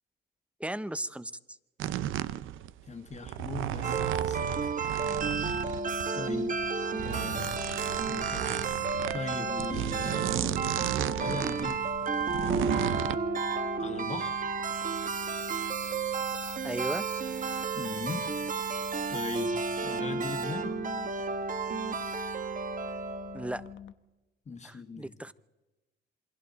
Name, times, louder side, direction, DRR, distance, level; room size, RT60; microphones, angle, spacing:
voice 1, 0.6-1.3 16.6-17.0 23.3-23.6 24.6-25.3, right 1 dB, 5° right, 15 dB, 0.7 m, -35 dB
sound 1, 1.8-13.2, right 12 dB, 85° right, 0.7 m, -34 dB
voice 2, 2.8-4.7 6.1-6.6 7.0-7.6 8.0-11.8 12.4-13.2 13.8-14.4 17.7-20.8 24.4-25.1, left 4 dB, 35° left, 5 dB, 1.6 m, -40 dB
sound 2, 3.8-23.7, right 5 dB, 40° right, 1.3 m, -32 dB
sound 3, 5.0-23.9, left 10 dB, 75° left, 1.0 m, -45 dB
27.5 x 23.0 x 4.1 m, 1.1 s
cardioid pair, 90°, 20 cm